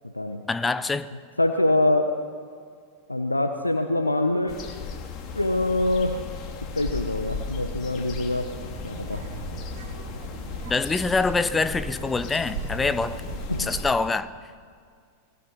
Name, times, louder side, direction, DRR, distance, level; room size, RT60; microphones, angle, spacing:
voice 1, 0.5-1.1 10.6-13.2 13.6-14.3, left 3 dB, 15° left, 0.9 m, -25 dB
voice 2, 1.4-2.1 3.1-4.6 5.3-6.2 6.7-8.5 8.8-9.2 13.5-13.7, left 1 dB, 85° left, 1.2 m, -24 dB
sound 1, 4.5-13.9, left 5 dB, 35° left, 2.9 m, -36 dB
Child speech kid speaking, 8.4-14.0, right 5 dB, 55° right, 3.4 m, -39 dB
28.5 x 20.0 x 5.8 m
figure-of-eight pair, 90°, 0 cm